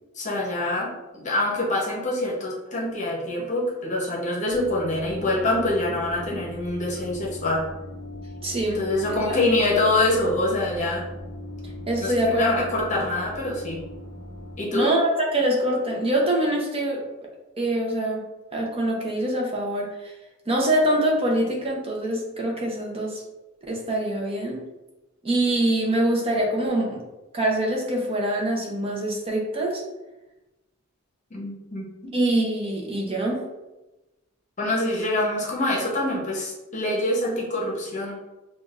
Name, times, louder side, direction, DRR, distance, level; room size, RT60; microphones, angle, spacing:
voice 1, 0.2-7.6 8.7-11.0 12.0-13.8 14.6-14.9 31.3-32.1 34.6-38.1, left 2 dB, 35° left, -3 dB, 0.8 m, -25 dB
sound 1, 4.5-14.6, left 1 dB, 60° right, 0.9 m, -39 dB
voice 2, 8.4-8.8 9.3-9.4 11.9-12.6 13.0-13.1 14.7-17.0 17.6-18.2 18.5-20.1 20.5-23.2 23.7-24.6 25.2-27.0 27.3-29.8 32.1-33.4, right 1 dB, 25° right, -1 dB, 0.7 m, -24 dB
5.8 x 2.4 x 2.5 m, 1.0 s
head